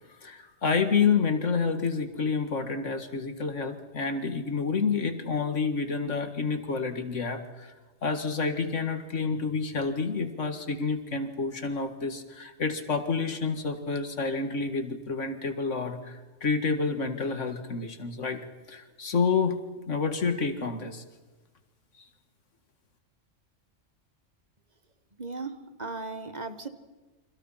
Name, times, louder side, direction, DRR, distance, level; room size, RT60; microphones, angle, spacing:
voice 1, 0.2-7.7 8.0-19.6 19.9-21.0, left 5 dB, 85° left, 7 dB, 2.2 m, -29 dB
voice 2, 25.2-26.7, right 3 dB, 35° right, 9 dB, 1.5 m, -37 dB
30.0 x 25.0 x 5.8 m, 1.2 s
omnidirectional pair, 1.2 m